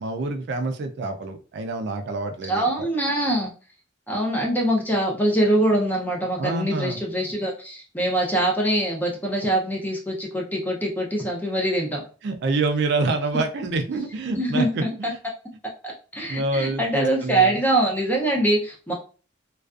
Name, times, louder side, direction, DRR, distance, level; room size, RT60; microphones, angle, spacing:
voice 1, 0.0-2.9 6.4-7.0 12.2-15.2 16.3-17.5, right 3 dB, 55° right, 5 dB, 0.3 m, -27 dB
voice 2, 2.5-3.5 4.1-12.0 14.3-14.9 15.8-18.9, right 1 dB, 10° left, -1 dB, 0.5 m, -23 dB
2.4 x 2.3 x 2.3 m, 0.38 s
head